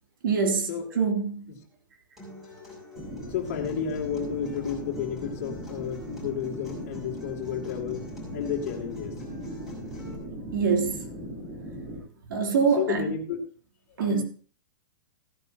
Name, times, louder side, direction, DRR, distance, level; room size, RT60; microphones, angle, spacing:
voice 1, 0.2-1.4 10.5-11.1 12.3-13.1 14.0-14.2, right 5 dB, 75° right, 3.1 m, -25 dB
Acoustic guitar, 2.2-10.2, left 1 dB, 5° right, 5.7 m, -47 dB
voice 2, 2.3-2.8 3.3-9.2 12.8-13.4 13.9-14.2, left 8 dB, 40° left, 2.3 m, -32 dB
sound 1, 2.9-12.0, equal, 30° right, 3.8 m, -38 dB
16.0 x 10.5 x 2.8 m
supercardioid pair, 175°, 11 cm